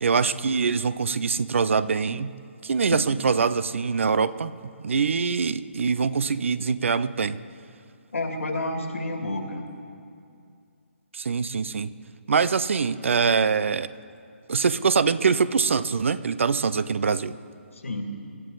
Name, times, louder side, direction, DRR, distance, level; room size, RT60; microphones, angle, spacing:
voice 1, 0.0-2.3 2.6-4.5 4.8-7.4 11.1-11.9 12.3-13.9 14.5-17.4, right 5 dB, 65° right, 16 dB, 0.6 m, -23 dB
voice 2, 8.1-9.6 17.7-18.0, left 2 dB, 80° left, 3 dB, 2.4 m, -30 dB
24.5 x 12.0 x 4.0 m, 2.4 s
figure-of-eight pair, 145°, 7 cm